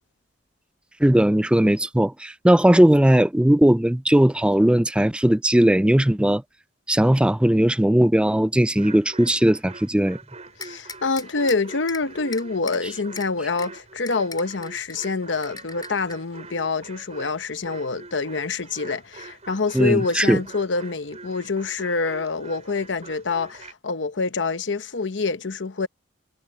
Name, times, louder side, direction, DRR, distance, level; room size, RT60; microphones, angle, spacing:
voice 1, 1.0-6.4 6.9-10.2 19.7-20.4, right 1 dB, 5° right, 0.4 m, -18 dB
sound 1, 8.7-23.7, right 3 dB, 35° right, 6.0 m, -44 dB
voice 2, 10.6-25.9, left 4 dB, 70° left, 1.0 m, -26 dB
sound 2, 10.6-11.6 11.9-12.0 12.3-12.8 13.2-13.3 13.6-13.7 14.1-15.1 15.4-16.1, left 5 dB, 20° left, 3.6 m, -37 dB
head